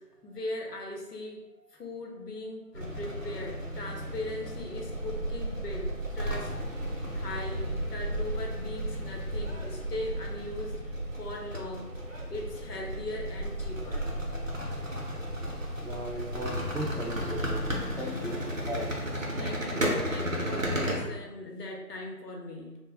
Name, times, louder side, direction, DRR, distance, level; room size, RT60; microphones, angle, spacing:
voice 1, 0.0-6.5 7.1-11.9 12.3-14.2 19.3-22.8, left 1 dB, 70° left, 1 dB, 0.8 m, -39 dB
sound 1, 2.7-21.0, equal, 50° right, 0.6 m, -34 dB
voice 2, 15.8-19.0, right 1 dB, 5° left, -1 dB, 0.3 m, -37 dB
2.4 x 2.0 x 3.3 m, 1.1 s
figure-of-eight pair, 175°, 49 cm